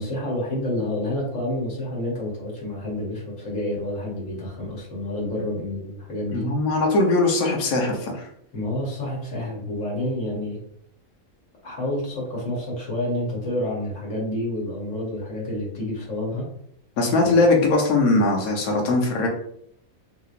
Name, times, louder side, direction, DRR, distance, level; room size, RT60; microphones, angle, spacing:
voice 1, 0.0-6.5 8.5-10.6 11.6-16.5, left 1 dB, 65° left, -3 dB, 1.4 m, -29 dB
voice 2, 6.3-8.3 17.0-19.3, left 2 dB, 80° left, 0 dB, 1.3 m, -20 dB
3.6 x 2.9 x 2.4 m, 0.68 s
omnidirectional pair, 1.5 m